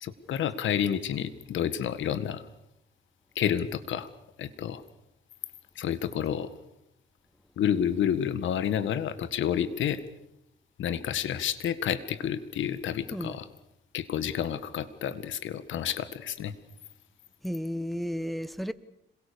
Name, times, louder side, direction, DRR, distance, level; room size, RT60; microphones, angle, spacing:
voice 1, 0.0-2.5 3.4-4.1 4.4-4.8 5.8-6.5 7.6-10.0 10.8-13.5 13.9-16.5, left 9 dB, 75° left, 1.8 m, -29 dB
voice 2, 17.4-18.7, equal, ahead, 1.3 m, -33 dB
26.5 x 22.5 x 7.0 m
cardioid pair, 90°, 20 cm